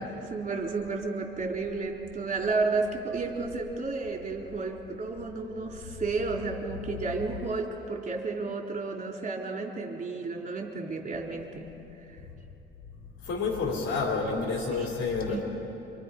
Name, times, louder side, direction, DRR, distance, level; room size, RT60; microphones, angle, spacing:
voice 1, 0.0-11.7 12.0-12.2 14.8-14.9 15.2-15.4, right 3 dB, 40° right, 0 dB, 4.1 m, -32 dB
voice 2, 13.2-15.4, left 4 dB, 75° left, -2 dB, 3.7 m, -29 dB
29.0 x 26.0 x 5.6 m, 3.0 s
cardioid pair, 90°, 20 cm